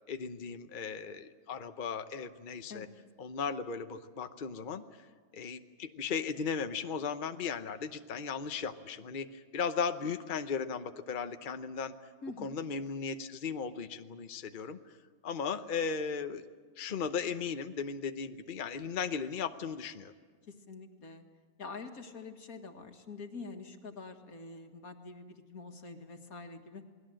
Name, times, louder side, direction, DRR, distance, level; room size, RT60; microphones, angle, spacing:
voice 1, 0.1-2.9 3.2-4.8 5.3-11.9 12.4-14.8 15.2-16.4 16.8-20.1, left 6 dB, 40° left, 8 dB, 1.0 m, -36 dB
voice 2, 12.2-12.6 20.5-21.2 21.6-26.9, left 4 dB, 85° left, 5 dB, 2.2 m, -46 dB
28.5 x 20.5 x 7.7 m, 1.5 s
omnidirectional pair, 1.5 m